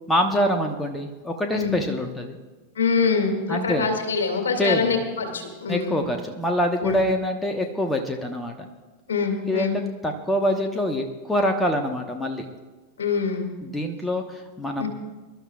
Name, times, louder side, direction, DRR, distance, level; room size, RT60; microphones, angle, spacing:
voice 1, 0.1-2.4 3.5-3.9 4.6-4.9 5.7-8.7 9.5-12.5 13.6-14.9, equal, 10° left, 4 dB, 1.2 m, -25 dB
voice 2, 2.8-6.0 6.8-7.0 9.1-9.8 13.0-13.5 14.8-14.9, left 5 dB, 65° left, 4 dB, 2.3 m, -24 dB
25.0 x 12.5 x 2.4 m, 1.3 s
figure-of-eight pair, 90°, 0 cm